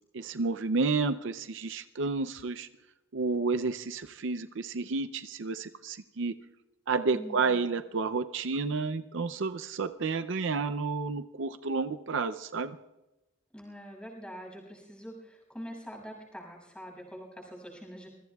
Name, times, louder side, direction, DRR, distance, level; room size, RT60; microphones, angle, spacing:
voice 1, 0.1-2.7 3.1-6.3 6.9-12.8, right 4 dB, 65° right, 9 dB, 0.5 m, -31 dB
voice 2, 7.1-7.6 13.5-18.1, equal, 5° left, -1 dB, 6.6 m, -44 dB
26.5 x 21.5 x 2.3 m, 1.0 s
head